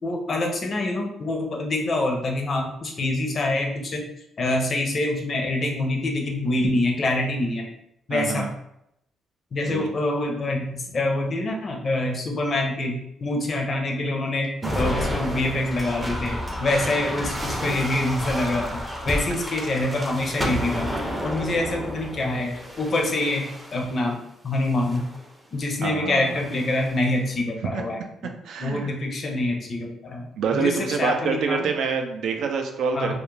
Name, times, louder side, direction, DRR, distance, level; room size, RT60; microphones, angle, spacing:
voice 1, 0.0-4.0 4.4-7.7 8.1-8.5 9.5-14.5 14.7-20.9 21.2-24.2 24.4-25.0 25.5-28.0 28.6-31.7 32.9-33.1, left 2 dB, 45° left, 1 dB, 0.5 m, -26 dB
voice 2, 8.1-8.5 9.7-9.9 25.8-26.4 27.7-27.8 28.4-28.9 30.4-33.1, right 5 dB, 75° right, 4 dB, 0.3 m, -26 dB
sound 1, 14.6-24.0 24.7-25.2 26.3-27.0, equal, 10° right, 0.5 m, -31 dB
2.3 x 2.0 x 3.1 m, 0.80 s
cardioid pair, 90°, 0 cm